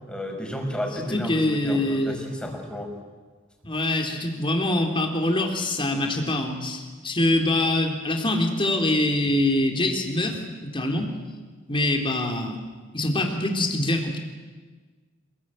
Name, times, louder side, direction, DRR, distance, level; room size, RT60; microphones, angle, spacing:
voice 1, 0.1-2.9, equal, 5° left, 2 dB, 5.6 m, -32 dB
voice 2, 1.0-2.2 3.6-11.1 11.7-12.6 12.9-14.2, left 1 dB, 25° left, 3 dB, 3.7 m, -24 dB
28.0 x 22.0 x 9.1 m, 1.4 s
head